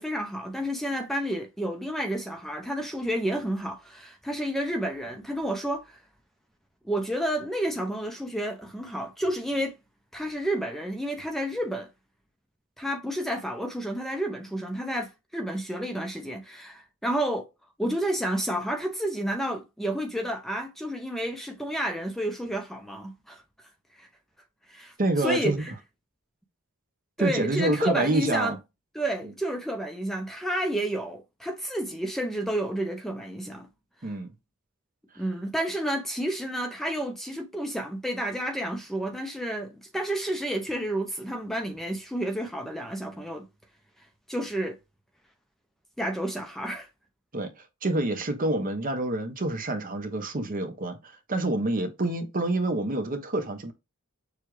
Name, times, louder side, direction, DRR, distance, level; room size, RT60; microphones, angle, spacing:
voice 1, 0.0-6.0 6.8-9.7 10.1-11.9 12.8-17.5 17.8-23.4 24.0-24.1 24.7-25.7 27.2-28.5 28.9-33.7 35.2-43.5 44.3-44.8 46.0-46.9, right 1 dB, ahead, 0.6 m, -30 dB
voice 2, 25.0-25.6 27.2-28.6 34.0-34.3 47.3-47.5 47.8-53.7, right 2 dB, 40° right, 0.9 m, -27 dB
6.6 x 2.3 x 3.2 m
head